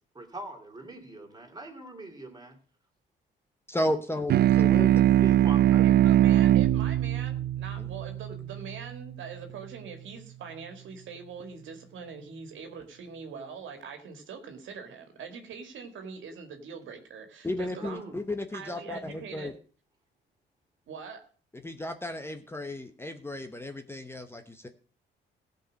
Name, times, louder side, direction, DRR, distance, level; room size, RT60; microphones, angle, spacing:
voice 1, 0.1-2.6 5.2-5.8 17.8-18.3, right 2 dB, 20° right, 3.0 m, -42 dB
voice 2, 3.7-4.9 7.8-7.9 17.4-19.5 21.6-24.7, left 1 dB, 10° left, 1.0 m, -33 dB
sound 1, 4.3-9.2, right 12 dB, 55° right, 0.5 m, -22 dB
voice 3, 5.8-18.1 18.5-19.6 20.9-21.2, right 5 dB, 75° right, 2.1 m, -43 dB
15.5 x 5.3 x 6.3 m
cardioid pair, 90°, 20 cm